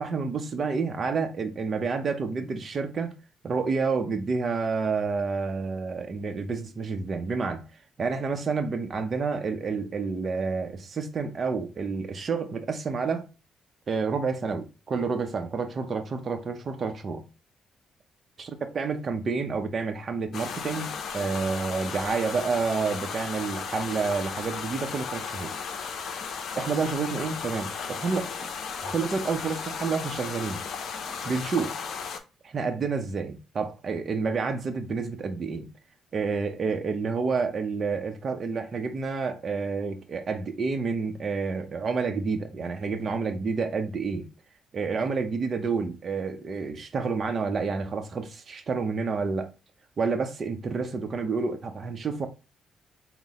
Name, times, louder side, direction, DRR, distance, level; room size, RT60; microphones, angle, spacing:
voice 1, 0.0-3.1 3.4-7.6 8.0-13.3 13.9-17.2 18.4-25.5 26.6-28.5 28.8-30.6 31.2-31.8 32.4-35.7 36.1-44.3 44.7-49.5 50.0-52.3, right 4 dB, 45° right, 0.7 m, -29 dB
sound 1, 20.3-32.2, left 6 dB, 65° left, 0.6 m, -35 dB
4.0 x 2.2 x 3.5 m
cardioid pair, 90°, 0 cm